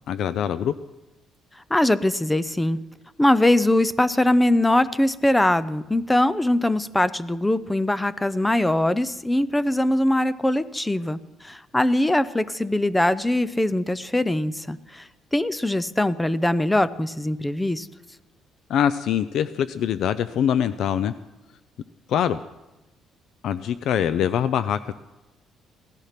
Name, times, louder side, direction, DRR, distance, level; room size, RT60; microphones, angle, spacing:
voice 1, 0.1-0.7 18.7-21.1 22.1-22.4 23.4-24.9, left 9 dB, 60° left, 14 dB, 0.5 m, -23 dB
voice 2, 1.7-2.8 3.2-17.9, left 1 dB, 5° left, 16 dB, 0.5 m, -22 dB
17.5 x 14.0 x 5.8 m, 1.0 s
cardioid pair, 170°, 0 cm